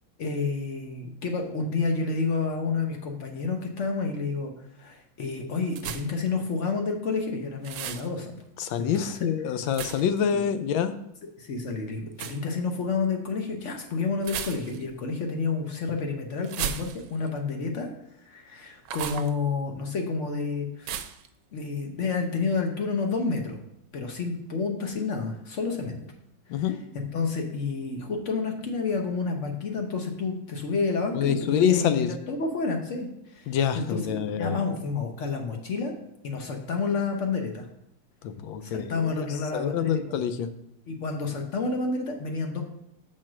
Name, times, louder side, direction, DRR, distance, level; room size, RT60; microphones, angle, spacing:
voice 1, 0.2-4.5 4.8-8.3 8.8-9.3 10.3-10.4 11.4-17.9 18.2-20.9 21.5-23.6 23.9-26.0 26.5-26.6 26.9-35.9 36.2-37.7 38.6-40.1 40.9-42.7, left 4 dB, 55° left, 3 dB, 0.8 m, -30 dB
sound 1, 5.7-6.3 7.6-8.1 9.7-10.2 12.1-12.4 14.2-14.9 16.4-17.3 18.8-19.3 20.8-21.3, right 9 dB, 75° right, 1.1 m, -34 dB
voice 2, 8.6-11.0 26.5-26.8 31.1-32.1 33.5-34.6 38.2-39.3 39.5-40.5, left 8 dB, 75° left, 11 dB, 1.3 m, -26 dB
6.3 x 4.3 x 6.0 m, 0.80 s
omnidirectional pair, 2.2 m